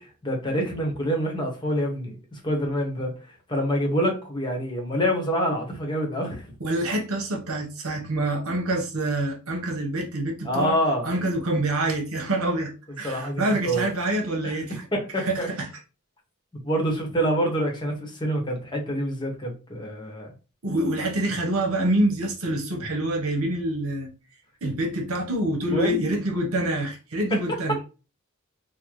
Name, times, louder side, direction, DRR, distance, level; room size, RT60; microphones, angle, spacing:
voice 1, 0.0-3.2 3.5-6.5 10.4-11.1 13.0-13.9 14.4-14.6 14.9-15.5 16.6-20.3 25.7-26.0, equal, 20° left, 0.9 m, -26 dB
voice 2, 6.6-10.8 11.0-14.8 15.2-15.6 20.6-24.1 24.6-27.8, right 1 dB, 80° right, 0.9 m, -26 dB
3.8 x 2.1 x 3.0 m
head